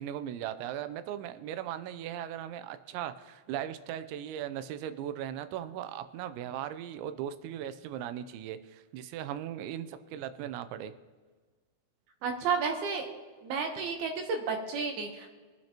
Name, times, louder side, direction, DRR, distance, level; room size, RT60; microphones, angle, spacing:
voice 1, 0.0-10.9, right 10 dB, 90° right, 11 dB, 3.0 m, -38 dB
voice 2, 12.2-13.1 13.4-15.3, right 5 dB, 70° right, 3 dB, 2.6 m, -32 dB
22.5 x 9.2 x 2.9 m, 1.4 s
omnidirectional pair, 5.1 m